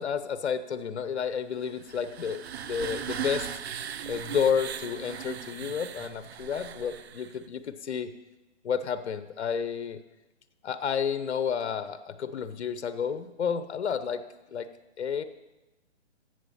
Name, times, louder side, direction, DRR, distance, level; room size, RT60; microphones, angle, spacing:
voice 1, 0.0-3.5 4.1-8.1 8.6-10.0 10.6-14.2 14.5-14.7 15.0-15.2, left 7 dB, 65° left, 12 dB, 0.8 m, -31 dB
sound 1, 1.6-7.4, right 9 dB, 60° right, 0.7 m, -38 dB
14.0 x 8.0 x 4.2 m, 1.1 s
hypercardioid pair, 155°, 36 cm